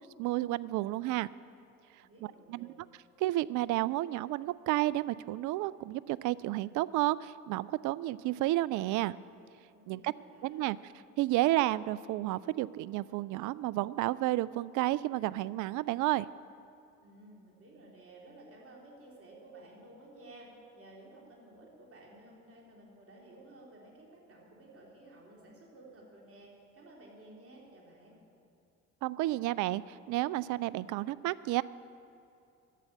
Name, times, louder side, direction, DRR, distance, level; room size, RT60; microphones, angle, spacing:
voice 1, 0.2-1.3 2.5-2.7 3.2-9.2 9.9-10.1 10.4-10.8 11.2-16.3 29.0-31.6, right 16 dB, 55° right, 19 dB, 0.5 m, -31 dB
voice 2, 2.0-2.7 9.7-10.6 17.0-28.2, right 2 dB, 35° right, -2 dB, 3.6 m, -54 dB
11.5 x 8.4 x 10.0 m, 2.6 s
hypercardioid pair, 50°, 37 cm